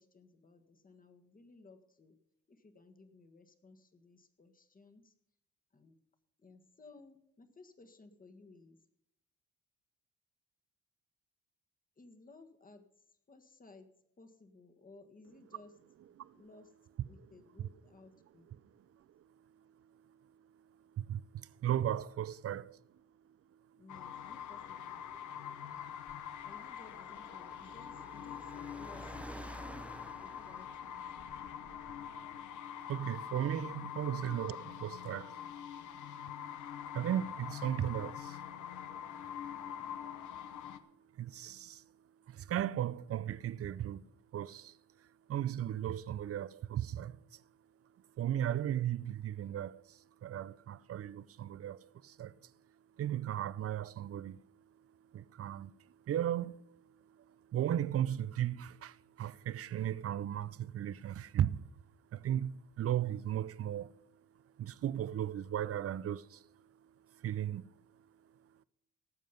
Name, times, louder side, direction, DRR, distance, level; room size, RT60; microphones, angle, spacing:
voice 1, 0.0-2.1 2.5-5.1 5.7-6.0 6.4-8.8 12.0-13.9 14.2-15.7 16.3-16.7 17.1-18.5 23.8-25.1 26.4-29.2 30.0-30.9, left 3 dB, 30° left, 1.7 m, -58 dB
voice 2, 21.0-22.8 29.7-29.8 32.9-35.4 36.9-38.4 41.2-41.8 42.3-44.0 44.3-44.7 45.3-47.4 48.2-52.3 53.0-54.4 55.1-55.7 56.1-56.6 57.5-61.6 62.1-64.0 64.6-66.4 67.2-67.7, right 11 dB, 50° right, 0.6 m, -36 dB
sound 1, 23.9-40.8, left 9 dB, 75° left, 1.1 m, -45 dB
Car, 24.2-32.2, right 1 dB, 5° right, 0.5 m, -52 dB
18.0 x 7.5 x 5.3 m
cardioid pair, 90°, 30 cm